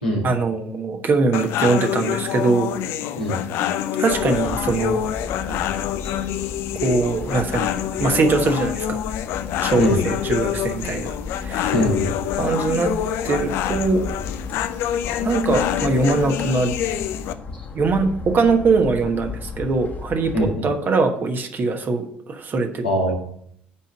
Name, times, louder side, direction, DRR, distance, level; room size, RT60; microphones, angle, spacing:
voice 1, 0.2-2.7 4.0-5.1 5.5-5.6 6.8-7.7 8.0-9.0 9.6-11.7 12.4-12.9 13.2-14.1 15.2-16.7 17.7-20.3 20.6-22.8, right 4 dB, 40° right, 6 dB, 1.2 m, -22 dB
sound 1, 1.3-17.3, left 11 dB, 55° left, 0.5 m, -26 dB
sound 2, 4.1-20.6, left 4 dB, 35° left, 1.3 m, -35 dB
voice 2, 11.7-12.1 20.3-20.7 22.8-23.2, equal, 90° left, -6 dB, 2.5 m, -21 dB
9.8 x 4.0 x 6.4 m, 0.66 s
figure-of-eight pair, 55°, 5 cm